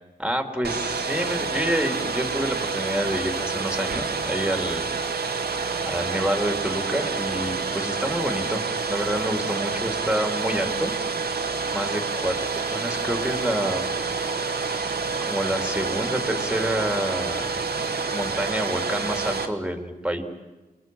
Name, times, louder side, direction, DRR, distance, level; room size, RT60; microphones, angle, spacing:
voice 1, 0.2-4.8 5.8-10.9 11.7-13.9 15.2-17.6 18.1-20.2, equal, 5° right, 6 dB, 3.0 m, -28 dB
Domestic sounds home sounds, 0.6-19.5, right 4 dB, 80° right, 1.9 m, -28 dB
29.0 x 20.0 x 7.7 m, 1.2 s
wide cardioid pair, 75°, 16 cm